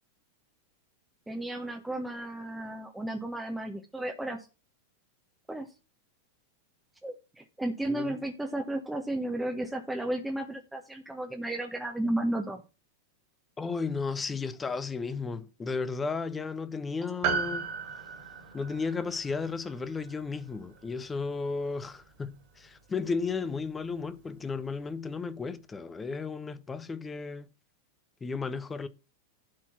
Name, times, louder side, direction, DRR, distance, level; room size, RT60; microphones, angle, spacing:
voice 1, 1.3-4.5 5.5-5.7 7.0-12.6, right 1 dB, 5° right, 1.2 m, -33 dB
voice 2, 7.9-8.2 13.6-17.7 18.5-27.5 28.2-28.9, left 4 dB, 15° left, 0.9 m, -34 dB
Piano, 17.2-21.8 22.1-22.2, right 6 dB, 45° right, 2.6 m, -36 dB
12.0 x 4.4 x 5.9 m
figure-of-eight pair, 90°, 0 cm